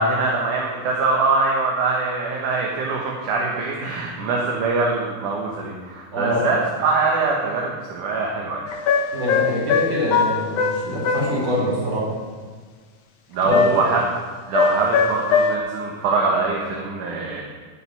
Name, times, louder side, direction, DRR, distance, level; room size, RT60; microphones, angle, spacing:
voice 1, 0.0-8.6 13.3-14.0 14.5-17.4, right 3 dB, 60° right, -1 dB, 2.6 m, -23 dB
voice 2, 6.1-6.4 9.1-12.1 13.4-13.6, equal, 35° right, -5 dB, 5.1 m, -24 dB
sound 1, 8.7-11.3 13.5-14.0 14.5-15.6, left 5 dB, 70° left, 2.8 m, -21 dB
12.5 x 6.7 x 9.8 m, 1.5 s
omnidirectional pair, 4.5 m